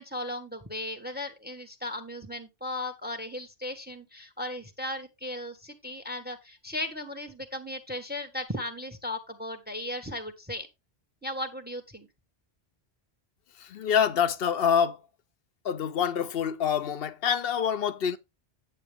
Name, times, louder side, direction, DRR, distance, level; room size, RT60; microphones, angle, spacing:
voice 1, 0.0-10.7 11.2-12.1, left 1 dB, 10° right, 1.2 m, -36 dB
voice 2, 13.7-15.0 15.6-18.2, left 8 dB, 70° left, 0.9 m, -26 dB
9.1 x 8.1 x 3.3 m
omnidirectional pair, 1.0 m